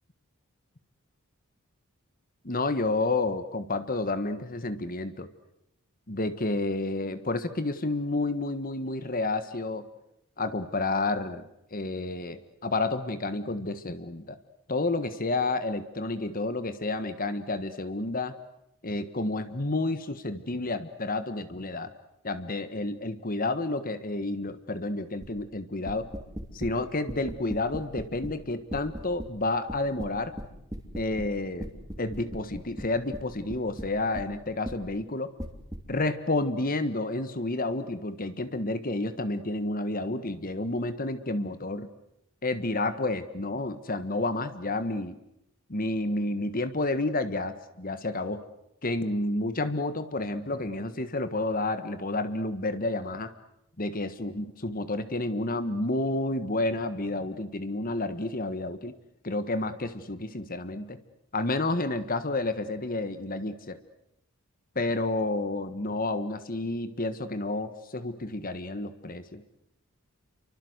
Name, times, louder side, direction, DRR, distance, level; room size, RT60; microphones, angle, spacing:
voice 1, 2.4-5.3 6.1-9.9 10.4-14.4 14.7-18.3 18.8-21.9 22.2-26.1 26.5-30.3 30.9-31.7 32.0-35.3 35.9-41.9 42.4-45.2 45.7-48.4 48.8-53.3 53.8-58.9 59.2-61.0 61.3-63.8 64.7-69.4, left 2 dB, 40° left, 11 dB, 1.6 m, -30 dB
sound 1, 25.2-25.4 25.9-26.7 27.1-28.4 28.7-29.3 29.7-31.3 31.6-34.3 34.6-34.8 35.4-35.8, equal, 15° right, 3.1 m, -38 dB
30.0 x 24.0 x 8.1 m, 0.80 s
head